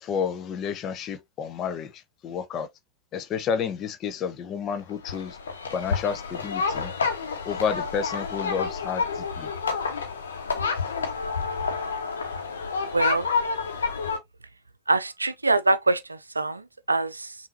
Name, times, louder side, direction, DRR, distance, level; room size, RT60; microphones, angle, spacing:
voice 1, 0.0-2.7 3.1-5.4 5.7-6.9 7.5-9.5, left 7 dB, 30° left, 0.7 m, -30 dB
sound 1, 5.0-14.2, left 5 dB, 70° left, 1.2 m, -29 dB
voice 2, 12.8-13.3 14.9-17.4, right 2 dB, 80° right, 0.5 m, -24 dB
5.6 x 2.7 x 2.8 m
figure-of-eight pair, 90°, 0 cm